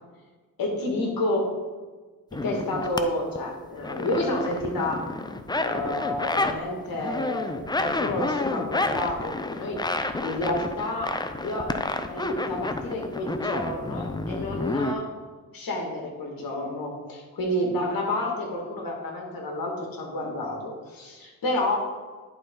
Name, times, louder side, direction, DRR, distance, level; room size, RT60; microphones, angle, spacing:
voice 1, 0.6-1.5 2.4-5.0 5.6-11.1 11.4-11.7 12.1-15.0 15.5-21.8, left 1 dB, 65° left, 0 dB, 2.1 m, -29 dB
sound 1, 2.3-3.0 3.4-6.6 6.9-14.9, left 2 dB, 10° left, 0.5 m, -30 dB
10.5 x 4.2 x 3.8 m, 1.4 s
supercardioid pair, 60°, 37 cm